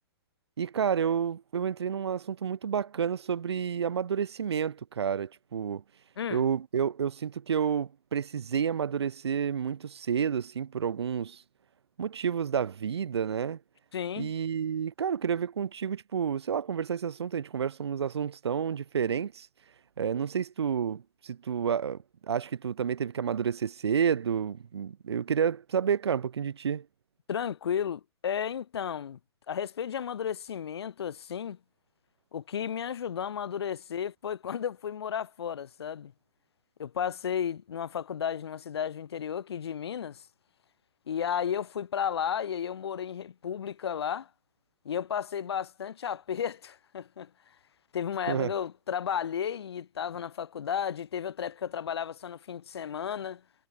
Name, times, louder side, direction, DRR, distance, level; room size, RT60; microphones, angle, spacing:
voice 1, 0.6-5.8 6.3-11.4 12.0-13.6 14.2-19.5 20.0-26.9 48.3-48.5, right 7 dB, 85° right, 0.8 m, -30 dB
voice 2, 13.9-14.3 27.3-29.2 29.5-31.6 32.3-36.1 36.8-40.2 41.1-44.3 44.8-47.3 47.9-53.4, left 8 dB, 75° left, 1.2 m, -33 dB
hypercardioid pair, 125°, 13 cm